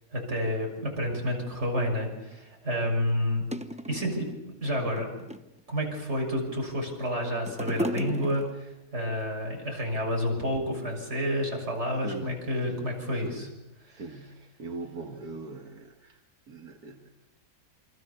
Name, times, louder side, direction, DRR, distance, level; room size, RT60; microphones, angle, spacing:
voice 1, 0.1-3.4 3.9-5.3 5.7-13.5 13.9-14.0, equal, 45° right, 1 dB, 7.0 m, -30 dB
sound 1, 2.3-2.4 3.1-3.2 3.5-4.3 4.8-5.6 6.3-6.9 7.1-8.8 9.5-9.6, right 1 dB, 5° right, 0.8 m, -35 dB
voice 2, 12.0-12.4 12.7-12.9 13.2-13.6 13.9-16.2 16.5-17.1, right 4 dB, 85° right, 2 dB, 2.2 m, -41 dB
28.5 x 25.0 x 6.9 m, 0.96 s
omnidirectional pair, 1.6 m